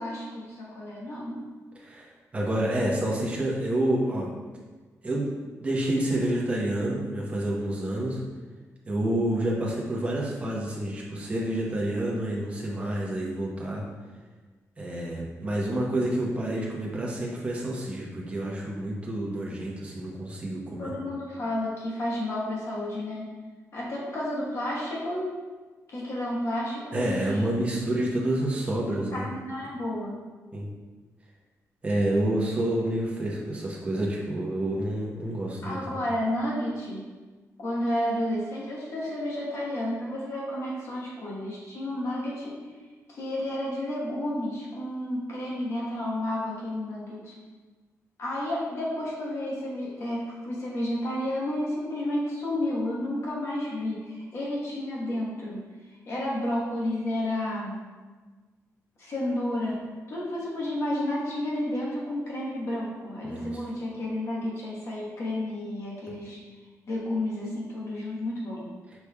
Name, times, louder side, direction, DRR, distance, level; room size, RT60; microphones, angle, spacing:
voice 1, 0.0-1.4 20.8-23.3 23.7-25.3 25.9-27.4 29.1-30.1 35.6-37.0 37.6-42.5 43.1-47.3 48.2-55.6 56.1-57.8 59.0-59.8 60.1-66.4 66.9-68.6, left 1 dB, 55° left, -4 dB, 1.1 m, -31 dB
voice 2, 2.3-4.3 5.0-5.3 5.6-8.2 8.9-13.8 14.8-20.9 26.9-29.3 30.5-30.7 31.8-36.0 63.2-63.6, right 1 dB, 20° right, -3 dB, 0.9 m, -28 dB
6.7 x 3.2 x 2.3 m, 1.3 s
wide cardioid pair, 165°, 6 cm